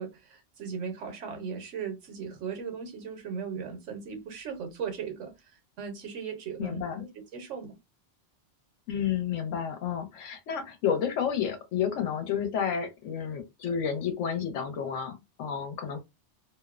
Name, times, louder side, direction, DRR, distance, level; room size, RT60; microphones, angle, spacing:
voice 1, 0.0-5.3 5.8-7.8, right 6 dB, 80° right, 1.1 m, -37 dB
voice 2, 6.6-7.0 8.9-16.0, left 8 dB, 90° left, 1.0 m, -31 dB
2.7 x 2.0 x 2.3 m
omnidirectional pair, 1.2 m